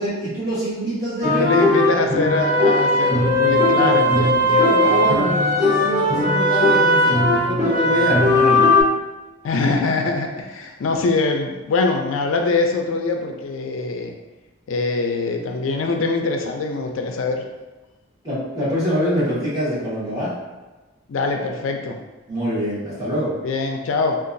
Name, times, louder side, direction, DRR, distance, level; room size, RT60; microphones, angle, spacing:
voice 1, 0.0-1.4 1.8-1.9 3.8-4.0 4.5-8.8 18.2-20.3 22.3-23.3, equal, 20° right, -10 dB, 1.3 m, -25 dB
voice 2, 1.2-4.5 9.4-14.1 14.7-17.4 21.1-22.0 23.4-24.2, left 3 dB, 80° left, 3 dB, 0.4 m, -23 dB
sound 1, 1.2-8.8, left 1 dB, 55° right, 1.2 m, -17 dB
3.8 x 2.4 x 2.6 m, 1.2 s
head